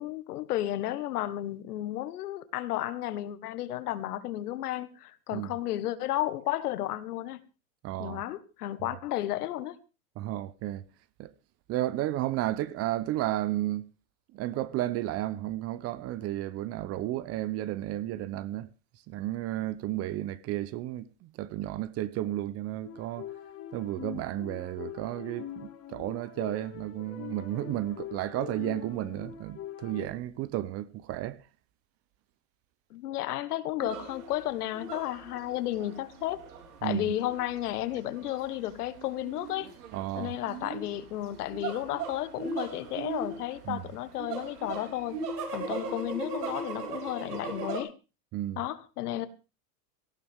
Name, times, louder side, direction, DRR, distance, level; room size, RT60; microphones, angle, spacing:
voice 1, 0.0-7.4 8.0-9.8 32.9-36.4 36.8-39.7 40.2-45.2 45.5-47.9 48.6-49.3, left 13 dB, 80° left, 1.5 m, -33 dB
voice 2, 7.8-8.2 10.2-10.8 11.2-11.3 11.7-13.9 14.3-18.7 19.1-23.3 23.7-31.4 36.8-37.2 39.9-40.3 43.6-43.8 48.3-48.6, right 14 dB, 30° right, 0.7 m, -33 dB
sound 1, 22.8-30.1, left 10 dB, 30° left, 2.1 m, -43 dB
sound 2, 33.8-47.8, right 4 dB, 85° right, 3.7 m, -38 dB
18.0 x 14.0 x 3.6 m
supercardioid pair, 135°, 45 cm